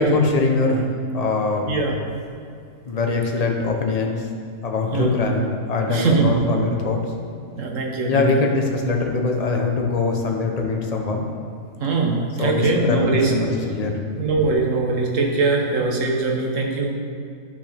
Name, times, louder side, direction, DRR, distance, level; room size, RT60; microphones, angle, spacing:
voice 1, 0.0-1.7 2.9-4.3 4.6-7.1 8.1-11.3 12.4-14.0, left 3 dB, 35° left, 2 dB, 0.8 m, -22 dB
voice 2, 4.8-5.3 5.9-6.4 7.6-8.3 11.8-13.3 14.2-16.9, right 3 dB, 65° right, 1 dB, 1.4 m, -21 dB
11.0 x 5.8 x 3.4 m, 2.4 s
omnidirectional pair, 1.5 m